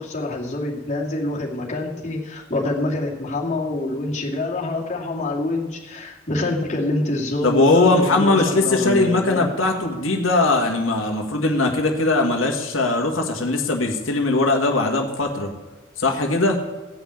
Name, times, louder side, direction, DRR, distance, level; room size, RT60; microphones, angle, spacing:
voice 1, 0.0-9.5, left 2 dB, 40° left, -2 dB, 2.3 m, -26 dB
voice 2, 7.4-15.5 16.0-16.6, left 2 dB, 90° left, 1 dB, 1.7 m, -20 dB
16.0 x 5.8 x 8.8 m, 1.2 s
head